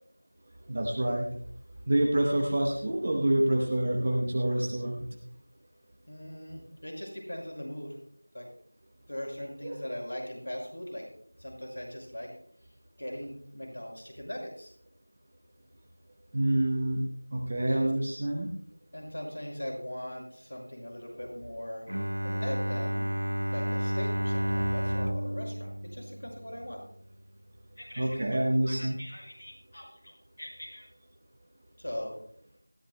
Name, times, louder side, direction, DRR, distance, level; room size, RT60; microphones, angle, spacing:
voice 1, 0.7-1.3 1.9-5.0 9.6-9.8 10.1-10.2 16.3-17.0 17.3-18.5 28.0-29.0, right 1 dB, 15° right, 0 dB, 0.9 m, -27 dB
voice 2, 6.1-8.0 8.3-8.5 9.1-11.1 11.4-12.3 13.0-14.7 17.7-17.9 18.9-21.8 22.2-23.1 23.5-26.8 27.8-30.9 31.8-32.1, equal, 45° left, 1 dB, 5.8 m, -40 dB
Bowed string instrument, 21.9-26.9, equal, 85° right, 0.7 m, -31 dB
19.0 x 16.0 x 2.2 m, 0.62 s
figure-of-eight pair, 180°, 0 cm